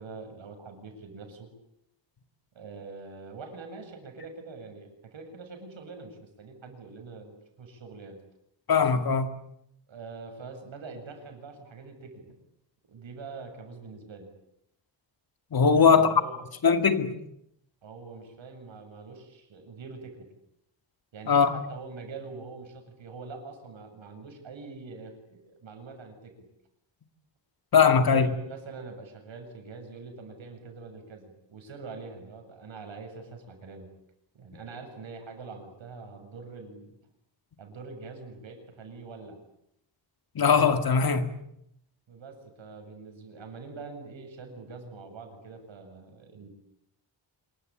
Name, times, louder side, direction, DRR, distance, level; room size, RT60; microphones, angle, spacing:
voice 1, 0.0-1.5 2.5-8.2 9.9-12.4 12.9-14.3 15.7-16.4 17.8-20.3 21.1-26.3 28.1-33.9 34.3-37.0 37.6-39.4 42.1-46.5, right 4 dB, 75° right, 7.6 m, -44 dB
voice 2, 8.7-9.3 15.5-16.1 16.6-17.1 21.3-21.6 27.7-28.3 40.4-41.3, left 6 dB, 50° left, 2.2 m, -20 dB
27.0 x 23.5 x 8.9 m
wide cardioid pair, 150°, 46 cm